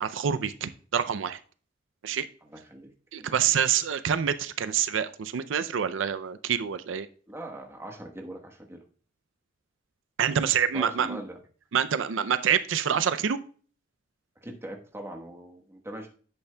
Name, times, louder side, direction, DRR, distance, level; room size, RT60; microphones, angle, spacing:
voice 1, 0.0-1.4 2.0-2.3 3.1-7.1 10.2-11.2 11.7-13.4, right 8 dB, 80° right, 12 dB, 0.4 m, -26 dB
voice 2, 2.4-2.9 3.2-3.3 7.3-8.8 10.7-11.4 14.4-16.1, right 1 dB, 15° right, 2 dB, 1.1 m, -41 dB
10.0 x 8.1 x 2.2 m, 0.42 s
head